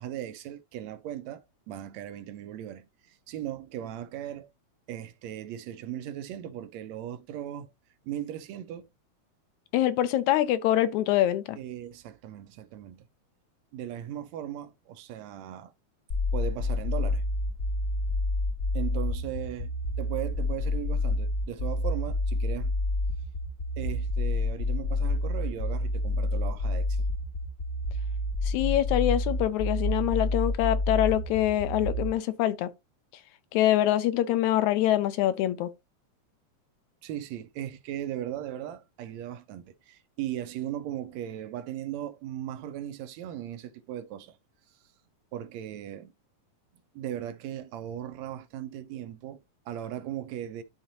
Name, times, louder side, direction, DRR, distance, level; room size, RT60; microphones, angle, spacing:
voice 1, 0.0-4.5 4.9-7.7 8.1-8.9 11.6-13.0 13.7-15.7 16.3-17.2 18.7-19.7 20.0-22.7 23.8-27.1 37.0-44.4 45.3-46.1 47.0-50.6, right 11 dB, 75° right, 1.8 m, -38 dB
voice 2, 9.7-11.6 28.5-32.7 33.5-35.7, left 13 dB, 80° left, 2.0 m, -25 dB
sound 1, 16.1-32.1, left 2 dB, 40° left, 1.6 m, -28 dB
12.0 x 4.1 x 2.7 m
omnidirectional pair, 3.5 m